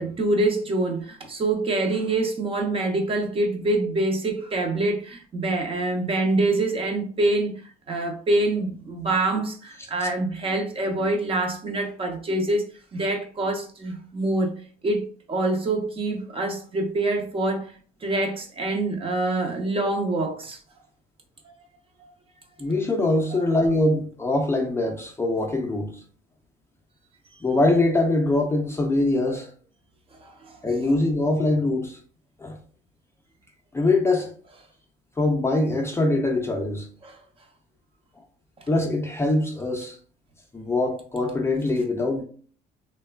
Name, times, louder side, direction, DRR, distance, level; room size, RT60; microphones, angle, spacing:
voice 1, 0.0-7.5 7.9-12.6 12.9-14.5 14.8-17.7 18.0-20.6 21.4-21.5 22.0-22.1 23.3-23.4 30.2-30.6 37.0-37.2, right 2 dB, 35° right, 0.6 m, -25 dB
voice 2, 22.6-25.9 27.4-29.5 30.6-32.0 32.4-32.6 33.7-34.3 35.2-36.9 38.7-40.0 40.5-42.2, left 2 dB, 15° left, 0.4 m, -23 dB
3.0 x 2.2 x 2.3 m
cardioid pair, 110°, 17 cm